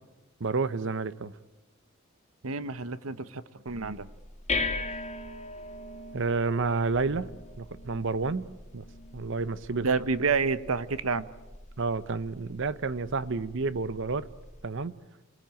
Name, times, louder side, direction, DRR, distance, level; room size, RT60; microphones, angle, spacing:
voice 1, 0.4-1.3 6.1-7.3 7.6-8.9 9.1-9.9 11.8-14.3 14.6-14.9, right 4 dB, 60° right, 0.9 m, -30 dB
voice 2, 2.4-4.1 9.8-11.3, right 4 dB, 85° right, 1.0 m, -29 dB
sound 1, 3.7-14.7, left 3 dB, 35° left, 2.3 m, -40 dB
27.5 x 19.5 x 9.1 m
head